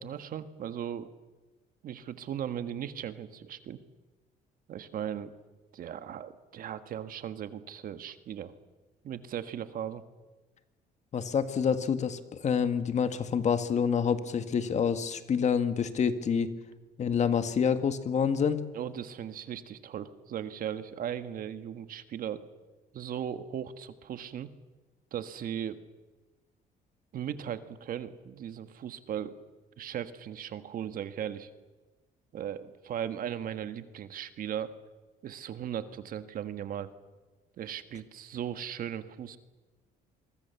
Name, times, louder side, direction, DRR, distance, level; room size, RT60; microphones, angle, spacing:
voice 1, 0.0-1.1 1.8-3.8 4.7-5.3 5.7-8.5 9.0-10.0 18.7-22.4 22.9-24.5 25.1-25.8 27.1-29.3 29.8-31.5 32.3-34.7 35.2-36.9 37.6-39.4, right 9 dB, 55° right, 11 dB, 1.5 m, -37 dB
voice 2, 11.1-16.5 17.0-18.6, left 7 dB, 45° left, 9 dB, 1.8 m, -27 dB
25.0 x 23.0 x 7.1 m, 1.2 s
cardioid pair, 110°, 17 cm